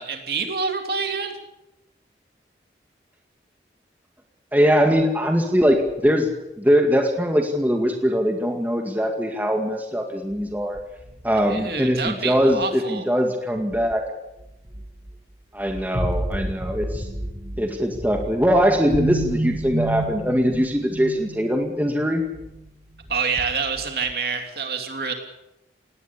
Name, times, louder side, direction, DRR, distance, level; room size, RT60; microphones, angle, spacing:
voice 1, 0.0-1.3 11.5-13.0 23.1-25.1, right 5 dB, 60° right, 4 dB, 3.0 m, -27 dB
voice 2, 4.5-6.3 6.6-10.8 11.2-14.0 15.5-17.0 17.6-22.2, equal, 10° right, 3 dB, 2.1 m, -21 dB
sound 1, 5.8-5.9 10.3-12.6 13.7-14.0 14.4-15.2 15.6-22.7 22.9-24.1, right 1 dB, 35° right, 2.2 m, -31 dB
19.5 x 18.0 x 8.5 m, 0.90 s
head